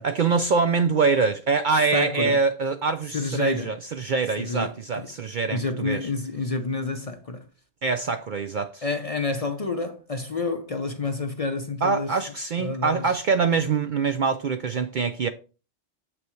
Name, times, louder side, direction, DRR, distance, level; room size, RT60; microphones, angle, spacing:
voice 1, 0.0-6.0 7.8-8.8 11.8-15.3, right 4 dB, 55° right, 0.5 m, -24 dB
voice 2, 1.9-2.4 3.1-3.7 4.4-5.1 5.5-7.4 8.8-12.2 12.6-13.2, left 3 dB, 40° left, 0.5 m, -29 dB
7.7 x 5.9 x 3.1 m
omnidirectional pair, 1.2 m